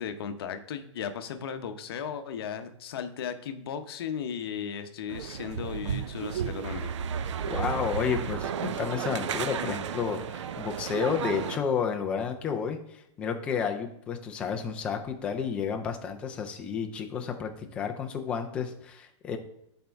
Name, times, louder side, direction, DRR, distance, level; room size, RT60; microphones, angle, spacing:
voice 1, 0.0-7.0, left 7 dB, 50° left, 8 dB, 0.8 m, -36 dB
sound 1, 5.1-11.6, right 8 dB, 65° right, 0.5 m, -33 dB
voice 2, 7.5-19.4, left 6 dB, 5° left, 3 dB, 0.3 m, -31 dB
11.5 x 4.4 x 3.5 m, 0.77 s
supercardioid pair, 175°, 16 cm